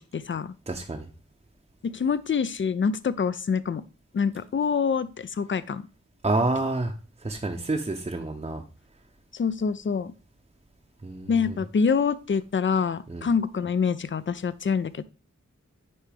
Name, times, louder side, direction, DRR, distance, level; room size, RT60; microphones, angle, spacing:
voice 1, 0.1-0.5 1.8-3.8 4.1-5.8 9.3-10.1 11.3-15.0, left 6 dB, 45° left, 16 dB, 0.4 m, -26 dB
voice 2, 0.7-1.1 6.2-6.9 7.2-8.6 11.0-11.6 13.1-13.3, right 2 dB, 25° right, 3 dB, 0.7 m, -28 dB
9.6 x 3.3 x 3.4 m, 0.33 s
wide cardioid pair, 65°, 29 cm